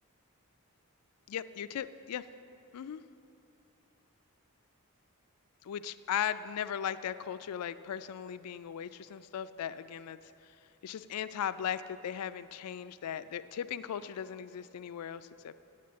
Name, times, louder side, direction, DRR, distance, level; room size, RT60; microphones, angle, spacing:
voice 1, 1.3-2.2 2.7-3.0 5.6-10.2 10.8-15.6, left 9 dB, 90° left, 13 dB, 0.3 m, -37 dB
7.9 x 7.5 x 8.5 m, 2.8 s
head